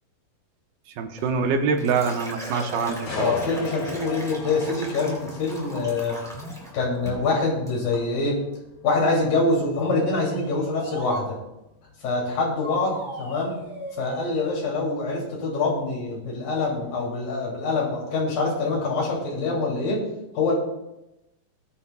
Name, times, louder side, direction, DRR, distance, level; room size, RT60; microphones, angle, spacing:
voice 1, 1.0-3.3, right 5 dB, 85° right, 4 dB, 2.8 m, -25 dB
Liquid, 1.2-6.7 7.1-7.3 7.7-8.0, equal, ahead, 2.7 m, -38 dB
sound 1, 3.1-16.9 17.3-17.6, left 3 dB, 60° left, 3.5 m, -42 dB
voice 2, 3.2-6.2 6.7-8.4 8.8-11.4 12.0-13.6 14.0-20.0 20.3-20.5, left 3 dB, 90° left, -4 dB, 4.4 m, -25 dB
sound 2, 9.5-11.3 12.6-14.7, equal, 25° right, 4.6 m, -38 dB
18.5 x 10.0 x 2.3 m, 0.91 s
omnidirectional pair, 3.9 m